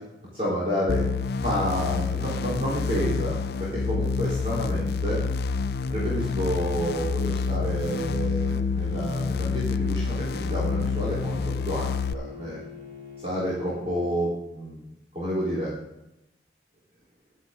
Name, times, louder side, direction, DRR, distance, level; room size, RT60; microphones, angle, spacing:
voice 1, 0.3-1.0 1.4-3.4 3.7-5.2 5.9-11.3 11.7-12.6 13.2-14.8 15.1-15.7, equal, 35° right, -7 dB, 3.8 m, -29 dB
sound 1, 0.9-12.1, left 5 dB, 55° left, 0.5 m, -28 dB
Bowed string instrument, 9.8-14.3, left 3 dB, 80° right, 3.3 m, -44 dB
14.0 x 11.0 x 3.7 m, 0.93 s
head